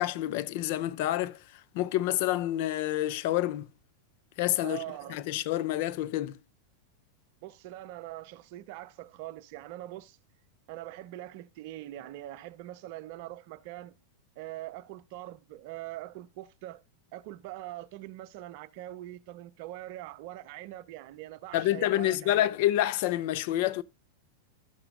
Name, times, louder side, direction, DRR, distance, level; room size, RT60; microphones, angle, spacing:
voice 1, 0.0-1.4 1.7-3.7 4.4-4.8 5.1-6.4 21.5-23.8, left 14 dB, 50° left, 0.5 m, -28 dB
voice 2, 4.6-5.2 7.4-10.2 10.7-13.9 14.4-16.8 17.1-22.4, right 15 dB, 45° right, 0.6 m, -42 dB
11.5 x 6.8 x 2.3 m
figure-of-eight pair, 90°, 0 cm